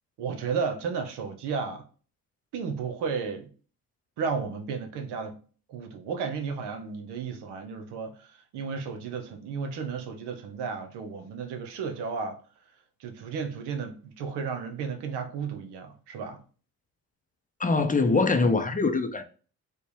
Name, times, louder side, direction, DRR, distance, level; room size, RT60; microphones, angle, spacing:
voice 1, 0.2-1.8 2.5-3.5 4.2-5.4 5.7-12.4 13.0-16.4, right 5 dB, 75° right, 0.9 m, -33 dB
voice 2, 17.6-19.2, left 3 dB, 20° left, 0.5 m, -23 dB
4.4 x 2.1 x 3.2 m
supercardioid pair, 60°, 42 cm